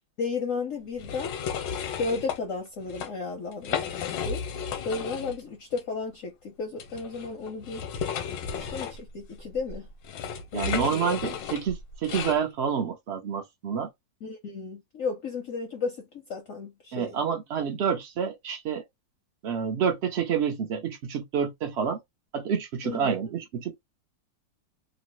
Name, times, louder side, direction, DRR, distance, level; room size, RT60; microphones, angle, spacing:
voice 1, 0.2-1.3 2.0-3.9 4.2-4.4 4.8-7.8 8.5-9.9 10.5-11.2 14.2-17.2 22.8-23.1, left 4 dB, 65° left, 0.8 m, -33 dB
sound 1, 1.0-2.4 2.8-3.1 3.5-5.4 5.7-5.8 6.8-12.4, left 7 dB, 85° left, 1.3 m, -33 dB
voice 2, 10.5-13.9 16.9-18.8 19.4-22.0 22.3-23.8, right 7 dB, 90° right, 0.5 m, -28 dB
3.0 x 2.1 x 2.9 m
omnidirectional pair, 2.0 m